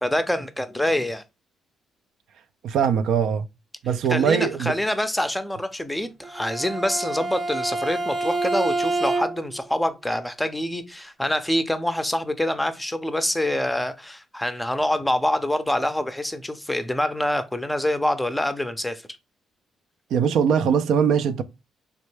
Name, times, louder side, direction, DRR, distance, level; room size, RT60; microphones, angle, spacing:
voice 1, 0.0-1.2 4.1-19.0, left 1 dB, 5° left, 0.5 m, -25 dB
voice 2, 2.6-3.5 3.8-4.7 20.1-21.4, right 7 dB, 75° right, 0.3 m, -21 dB
Bowed string instrument, 6.2-9.6, right 2 dB, 35° right, 0.6 m, -27 dB
3.4 x 2.1 x 3.1 m
cardioid pair, 90°, 0 cm